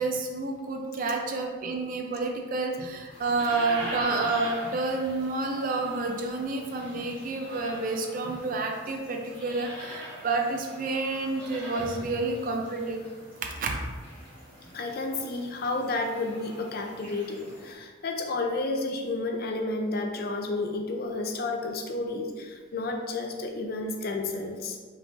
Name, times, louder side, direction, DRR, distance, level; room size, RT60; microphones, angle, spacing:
voice 1, 0.0-13.0 13.4-13.8, right 3 dB, 45° right, 2 dB, 0.4 m, -29 dB
sound 1, 3.1-17.7, right 1 dB, 10° left, 1.1 m, -42 dB
voice 2, 14.7-24.8, left 2 dB, 50° left, 3 dB, 0.4 m, -31 dB
5.2 x 3.1 x 2.5 m, 1.5 s
head